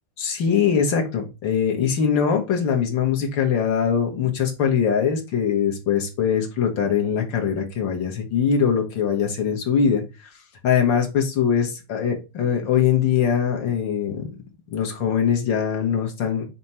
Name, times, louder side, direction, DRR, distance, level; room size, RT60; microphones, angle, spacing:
voice 1, 0.2-10.3 10.6-14.2 14.7-16.5, left 7 dB, 65° left, 2 dB, 1.9 m, -22 dB
6.1 x 2.9 x 5.4 m, 0.28 s
omnidirectional pair, 2.2 m